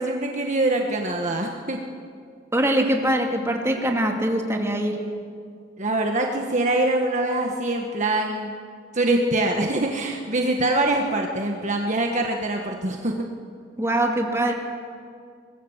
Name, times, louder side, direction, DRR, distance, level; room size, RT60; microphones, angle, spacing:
voice 1, 0.0-1.8 5.8-8.5 8.9-13.3, right 2 dB, 40° right, 2 dB, 1.5 m, -24 dB
voice 2, 2.5-5.1 13.8-14.5, right 1 dB, 15° right, 2 dB, 2.4 m, -23 dB
24.0 x 21.0 x 7.3 m, 2.2 s
head